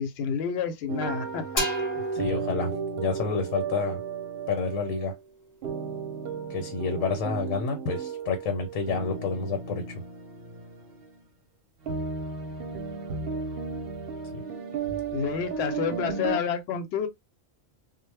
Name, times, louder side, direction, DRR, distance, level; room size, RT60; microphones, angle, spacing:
voice 1, 0.0-1.6 15.1-17.1, left 7 dB, 65° left, 0.8 m, -29 dB
sound 1, 0.9-5.2 5.6-11.2 11.8-16.4, right 5 dB, 60° right, 0.7 m, -35 dB
sound 2, 1.6-5.2, right 1 dB, 30° left, 0.3 m, -33 dB
voice 2, 2.1-4.0 4.5-5.1 6.5-10.0 14.3-14.4, left 4 dB, 85° left, 1.0 m, -29 dB
2.1 x 2.0 x 3.2 m
omnidirectional pair, 1.3 m